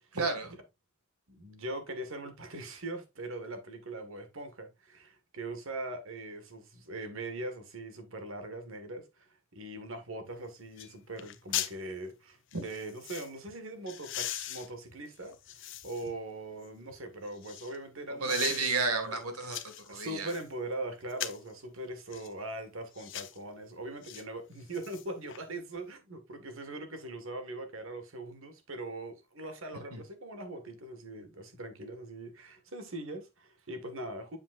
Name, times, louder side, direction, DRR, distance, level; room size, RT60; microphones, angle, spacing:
voice 1, 0.1-0.6 12.5-12.6 18.1-20.3 29.7-30.0, right 4 dB, 85° right, 2.0 m, -32 dB
voice 2, 1.3-9.3 9.6-18.5 19.1-19.2 19.9-34.4, right 2 dB, 65° right, 1.7 m, -41 dB
sound 1, 10.3-10.4 10.8-10.9 11.2-11.8 12.5-13.3 13.9-16.1 16.6-17.8 18.2-18.8 19.2-20.5 21.1-21.5 22.1-22.3 22.9-23.4 24.0-24.2 24.6-25.4 25.8-25.9, left 13 dB, 55° left, 0.7 m, -40 dB
7.8 x 7.1 x 2.5 m
head